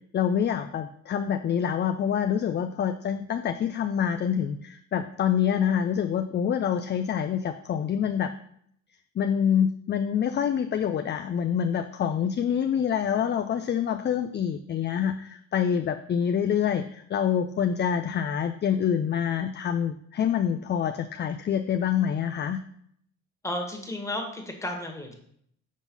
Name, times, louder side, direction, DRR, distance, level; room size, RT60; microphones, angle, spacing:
voice 1, 0.1-8.3 9.2-22.6, left 8 dB, 35° left, 8 dB, 0.4 m, -26 dB
voice 2, 23.4-25.1, left 1 dB, 10° left, 2 dB, 1.5 m, -33 dB
6.1 x 3.9 x 5.4 m, 0.68 s
cardioid pair, 90°, 30 cm